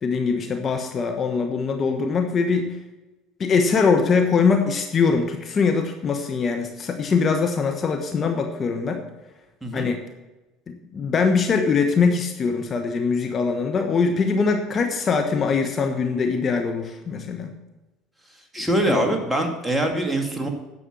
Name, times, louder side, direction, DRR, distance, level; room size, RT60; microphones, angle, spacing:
voice 1, 0.0-2.8 3.4-9.0 9.7-10.0 10.7-17.5 18.6-19.1, left 5 dB, 40° left, 5 dB, 1.2 m, -22 dB
voice 2, 18.5-20.5, right 1 dB, 5° right, 2 dB, 2.3 m, -23 dB
10.5 x 7.0 x 6.3 m, 1.1 s
hypercardioid pair, 75°, 0 cm